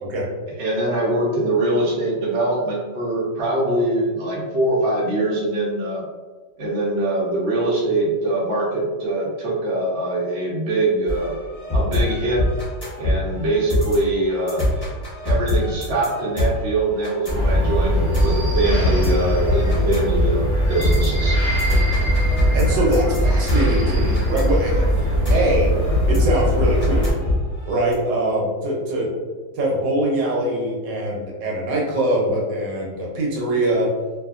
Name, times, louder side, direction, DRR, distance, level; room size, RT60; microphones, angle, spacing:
voice 1, 0.6-6.0 6.6-11.3 11.7-12.4 13.0-14.6 15.2-21.4, right 2 dB, 55° right, -5 dB, 0.7 m, -23 dB
sound 1, 11.1-27.9, left 1 dB, 20° left, 0.7 m, -24 dB
sound 2, 17.3-27.1, equal, 15° right, 1.2 m, -20 dB
voice 2, 22.5-24.8 25.3-25.7 26.1-27.1 27.7-29.1 29.5-33.9, right 1 dB, 70° right, -2 dB, 1.3 m, -22 dB
2.7 x 2.6 x 2.3 m, 1.3 s
omnidirectional pair, 2.1 m